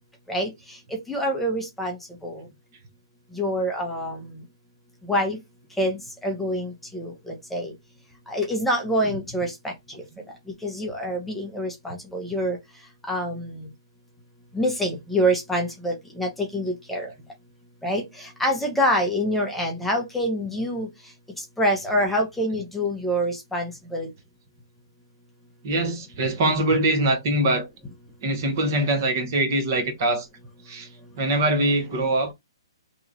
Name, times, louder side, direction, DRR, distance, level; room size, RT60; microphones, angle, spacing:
voice 1, 1.1-2.0 2.2-2.4 3.3-4.2 5.1-5.4 5.8-7.7 8.3-9.7 10.6-12.6 13.1-13.7 14.5-17.1 17.8-20.9 21.4-24.1, equal, 5° left, 0.7 m, -26 dB
voice 2, 9.9-10.2 25.6-27.7 28.2-30.3 30.6-30.9 31.2-32.3, right 1 dB, 45° right, 1.1 m, -23 dB
2.9 x 2.3 x 4.0 m
hypercardioid pair, 145°, 3 cm